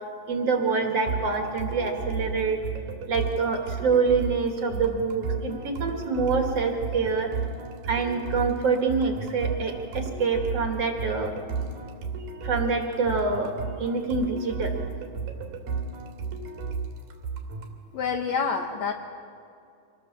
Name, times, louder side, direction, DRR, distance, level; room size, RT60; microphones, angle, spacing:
voice 1, 0.3-2.6 3.1-7.3 7.8-11.3 12.4-13.5 13.8-14.8, right 4 dB, 50° right, 3 dB, 2.5 m, -26 dB
sound 1, 1.1-17.8, right 5 dB, 75° right, 3.7 m, -33 dB
voice 2, 17.9-18.9, left 5 dB, 65° left, 4 dB, 1.9 m, -27 dB
25.5 x 19.0 x 7.2 m, 2.4 s
omnidirectional pair, 4.1 m